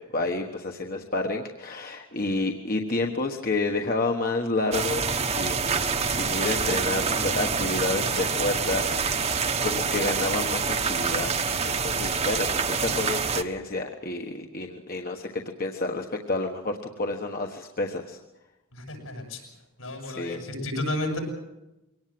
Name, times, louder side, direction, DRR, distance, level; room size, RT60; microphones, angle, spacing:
voice 1, 0.0-9.3 9.6-11.3 11.6-18.2 20.0-20.4, left 2 dB, 45° left, 3 dB, 1.3 m, -30 dB
sound 1, 4.7-13.4, right 5 dB, 30° right, 1.1 m, -26 dB
voice 2, 18.7-19.4 19.8-21.2, left 1 dB, 80° left, 3 dB, 7.9 m, -32 dB
23.5 x 18.5 x 7.7 m, 0.97 s
head